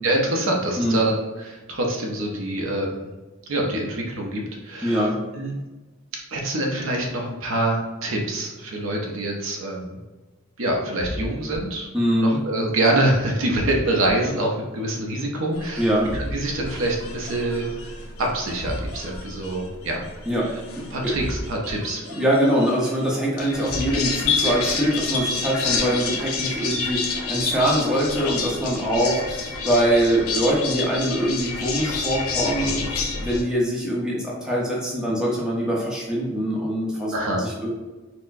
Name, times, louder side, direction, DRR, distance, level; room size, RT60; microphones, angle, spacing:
voice 1, 0.0-3.1 3.5-5.1 5.3-5.5 6.3-10.0 10.6-11.9 12.2-17.9 18.2-20.0 20.9-22.0 37.1-37.4, right 1 dB, 65° right, 0 dB, 0.6 m, -25 dB
voice 2, 4.8-5.2 11.9-12.4 15.8-16.1 20.3-20.5 22.1-37.7, equal, 5° right, -5 dB, 0.6 m, -23 dB
sound 1, 11.0-11.6 13.5-14.1 16.1-16.6 18.6-19.2 21.1-21.7 23.7-24.3, equal, 45° left, 0.9 m, -32 dB
sound 2, 15.5-33.4, left 4 dB, 80° left, 0.5 m, -29 dB
4.3 x 2.1 x 2.5 m, 1.2 s
head